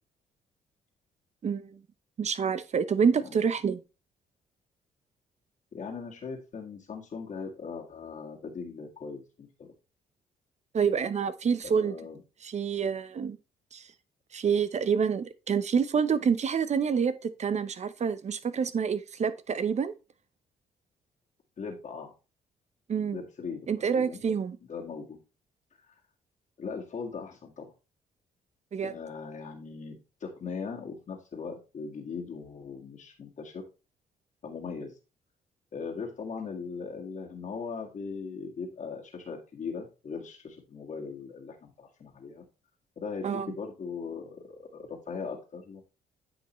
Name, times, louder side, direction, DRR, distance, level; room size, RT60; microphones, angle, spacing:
voice 1, 1.4-1.8 2.2-3.8 10.7-12.0 12.4-13.4 13.7-13.8 14.3-17.1 17.4-19.9 22.9-23.2 23.7-24.6 28.7-28.9 43.2-43.5, right 6 dB, 45° right, 0.8 m, -27 dB
voice 2, 5.7-9.7 11.6-12.2 21.6-22.1 23.1-23.7 24.0-24.2 24.7-25.2 26.6-27.7 28.8-30.0 30.2-33.6 34.4-34.9 35.7-42.4 43.0-45.8, left 5 dB, 50° left, 1.8 m, -39 dB
9.2 x 5.5 x 3.1 m
supercardioid pair, 60°, 16 cm